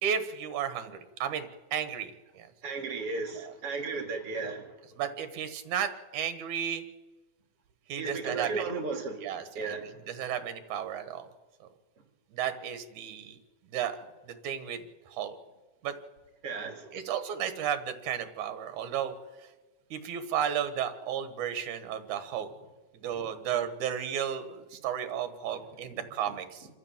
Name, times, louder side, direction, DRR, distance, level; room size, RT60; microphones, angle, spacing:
voice 1, 0.0-2.5 5.0-6.8 7.9-8.6 9.2-9.7 10.1-11.3 12.3-13.4 13.7-13.9 14.4-14.8 15.1-15.4 15.8-15.9 16.9-19.1 19.9-22.5 23.0-26.7, right 9 dB, 70° right, 9 dB, 2.9 m, -33 dB
voice 2, 2.6-4.8 8.0-9.3 9.5-9.9 16.4-16.9 23.1-23.2 25.8-26.0, right 4 dB, 45° right, 3 dB, 3.6 m, -35 dB
27.0 x 13.5 x 7.4 m, 1.2 s
omnidirectional pair, 3.6 m